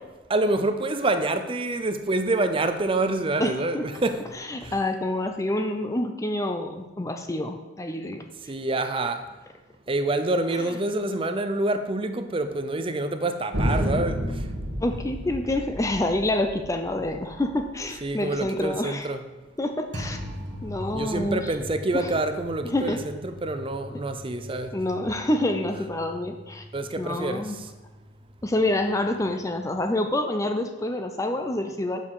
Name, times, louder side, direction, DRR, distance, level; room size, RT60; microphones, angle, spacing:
voice 1, 0.3-4.2 8.5-9.2 9.9-14.2 18.0-19.2 20.9-24.7 26.7-27.4, right 2 dB, 30° right, 0.6 m, -27 dB
voice 2, 3.4-3.8 4.3-8.2 10.6-10.8 14.8-19.1 19.6-20.2 20.6-21.5 21.9-22.1 22.6-23.0 24.7-26.6 27.0-27.6 28.4-32.0, left 1 dB, 15° left, 0.5 m, -27 dB
sound 1, 13.5-18.6 19.9-29.9, equal, 70° right, 1.6 m, -35 dB
7.2 x 5.7 x 6.3 m
head